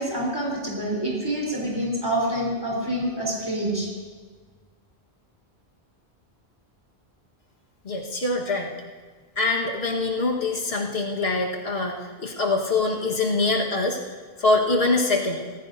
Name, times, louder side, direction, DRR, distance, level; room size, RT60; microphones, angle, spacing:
voice 1, 0.0-3.9, right 1 dB, 20° right, -4 dB, 3.9 m, -27 dB
voice 2, 7.9-8.7 9.4-14.0 14.4-15.4, left 3 dB, 75° left, -1 dB, 1.8 m, -24 dB
19.0 x 15.0 x 2.7 m, 1.5 s
omnidirectional pair, 1.1 m